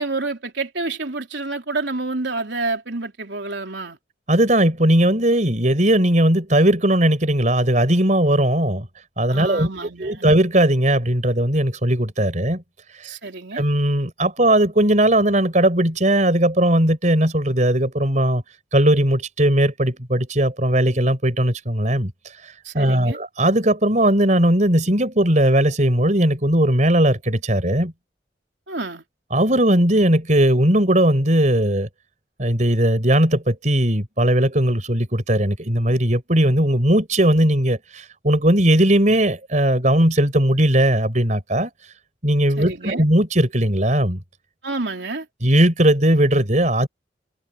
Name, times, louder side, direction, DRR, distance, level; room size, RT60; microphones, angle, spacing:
voice 1, 0.0-4.0 9.3-10.3 13.0-13.6 22.6-23.2 28.7-29.0 42.6-43.0 44.6-45.2, right 3 dB, 75° right, 3.3 m, -28 dB
voice 2, 4.3-8.9 9.2-9.7 10.0-12.6 13.5-18.4 18.7-22.1 22.7-27.9 29.3-31.9 32.4-41.7 42.2-44.2 45.4-46.9, right 1 dB, 40° right, 4.3 m, -18 dB
head